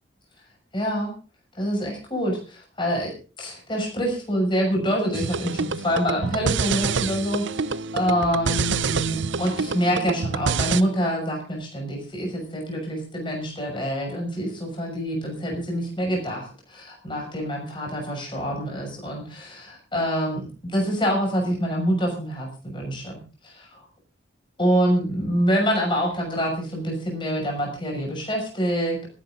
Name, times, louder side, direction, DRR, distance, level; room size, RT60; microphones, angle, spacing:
voice 1, 0.7-1.2 1.6-3.1 3.4-23.8 24.6-29.0, equal, 25° left, 1 dB, 6.3 m, -26 dB
sound 1, 5.1-10.8, right 5 dB, 70° right, 0.7 m, -27 dB
25.5 x 11.0 x 3.9 m, 0.37 s
head